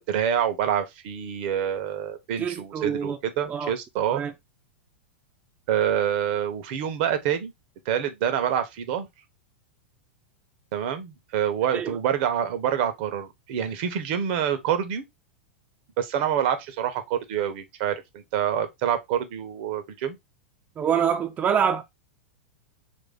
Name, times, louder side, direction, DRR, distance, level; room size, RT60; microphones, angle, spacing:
voice 1, 0.0-4.2 5.7-7.5 7.9-9.1 10.7-15.0 16.0-20.2, right 9 dB, 55° right, 0.8 m, -26 dB
voice 2, 2.4-3.2 3.5-3.7 4.1-4.3 11.7-12.0 20.8-21.8, right 8 dB, 25° right, 0.5 m, -25 dB
3.3 x 2.7 x 3.3 m
hypercardioid pair, 100°, 6 cm